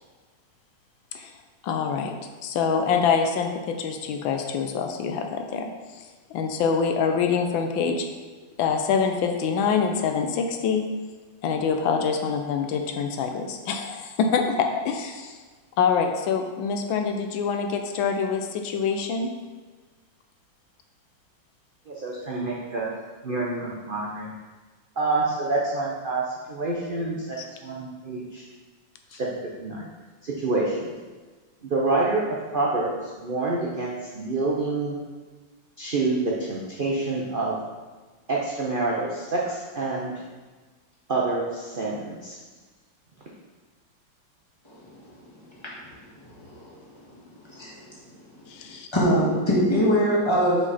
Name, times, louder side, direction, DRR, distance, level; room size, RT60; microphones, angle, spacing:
voice 1, 1.6-2.1 2.4-5.7 6.3-8.1 8.6-10.9 11.4-15.3 15.8-19.3 27.4-27.5 48.5-48.9, left 6 dB, 80° left, 5 dB, 1.4 m, -25 dB
voice 2, 21.9-22.9 23.2-24.3 25.0-26.2 26.5-28.4 29.1-29.3 29.6-29.9 30.2-30.9 31.6-32.2 32.5-34.9 35.8-37.5 38.3-40.1 41.1-42.4, right 3 dB, 75° right, -4 dB, 0.4 m, -27 dB
voice 3, 46.4-46.7 47.5-47.8 48.9-50.6, equal, 15° left, -6 dB, 1.4 m, -22 dB
5.5 x 5.0 x 4.1 m, 1.3 s
omnidirectional pair, 2.1 m